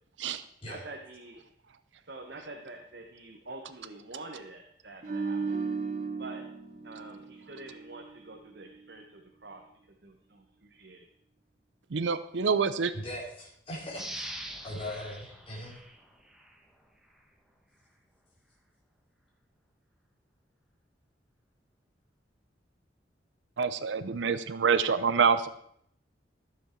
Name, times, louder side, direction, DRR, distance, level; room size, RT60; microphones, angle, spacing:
voice 1, 0.6-1.4 2.0-5.6 6.2-6.4 6.8-9.6 10.0-11.1, right 2 dB, 65° right, 3 dB, 1.1 m, -46 dB
sound 1, 5.0-8.3 8.6-8.8, right 4 dB, 45° right, 0.8 m, -36 dB
voice 2, 11.9-12.9 23.6-25.5, right 5 dB, 90° right, 13 dB, 0.6 m, -26 dB
voice 3, 12.9-14.3 14.6-15.8, left 1 dB, 30° left, -6 dB, 3.0 m, -39 dB
sound 2, 13.9-16.6 17.1-17.2, right 1 dB, 5° right, 1.2 m, -43 dB
12.5 x 7.2 x 4.5 m, 0.69 s
head